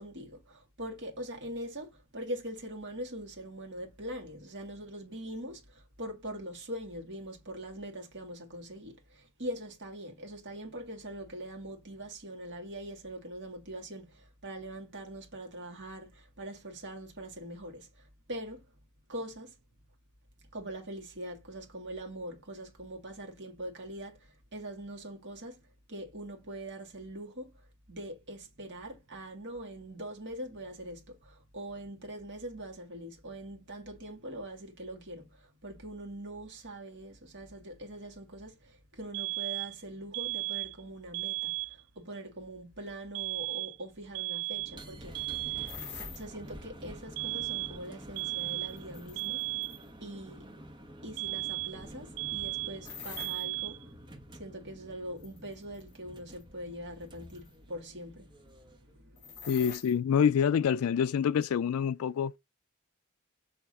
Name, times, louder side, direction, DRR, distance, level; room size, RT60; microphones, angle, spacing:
voice 1, 0.0-18.7 19.1-19.6 20.5-45.2 46.1-49.5 50.0-50.5 51.0-53.8 54.3-59.6, right 1 dB, 55° right, 2.1 m, -43 dB
sound 1, 39.1-39.8 40.1-40.8 41.1-41.8 43.1-43.8 44.1-44.8 45.1-45.8 47.2-47.8 48.2-48.8 49.2-49.8 51.2-51.8 52.2-52.8 53.2-53.8, right 31 dB, 80° right, 0.5 m, -35 dB
sound 2, 44.5-58.9, equal, 20° right, 1.3 m, -49 dB
sound 3, 45.7-46.2 48.2-49.9 52.8-53.4 55.2-55.9 56.4-56.5 57.3-57.5 59.2-59.9, left 6 dB, 55° left, 4.3 m, -45 dB
voice 2, 59.5-62.4, left 7 dB, 75° left, 0.3 m, -26 dB
7.1 x 3.3 x 4.2 m
head